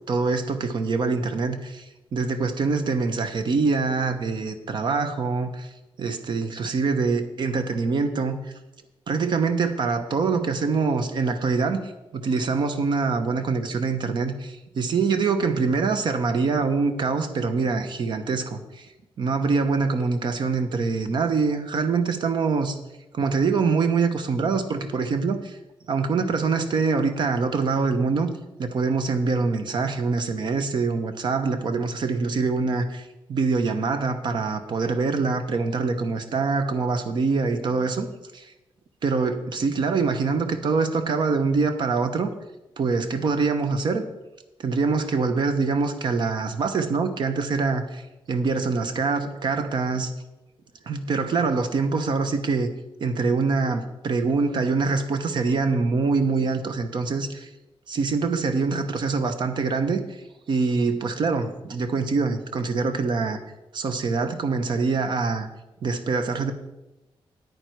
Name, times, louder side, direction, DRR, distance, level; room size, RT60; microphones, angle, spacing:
voice 1, 0.1-1.8 2.1-5.7 6.0-8.4 9.1-11.8 12.1-18.9 19.2-22.8 23.1-25.6 25.9-28.3 28.6-38.1 38.3-38.5 39.0-42.3 42.8-44.1 44.6-48.0 48.3-50.1 50.9-52.7 53.0-57.5 57.9-60.0 60.5-63.4 63.7-65.5 65.8-66.5, right 4 dB, 55° right, 9 dB, 0.9 m, -24 dB
9.6 x 9.1 x 4.6 m, 0.99 s
wide cardioid pair, 175°, 10 cm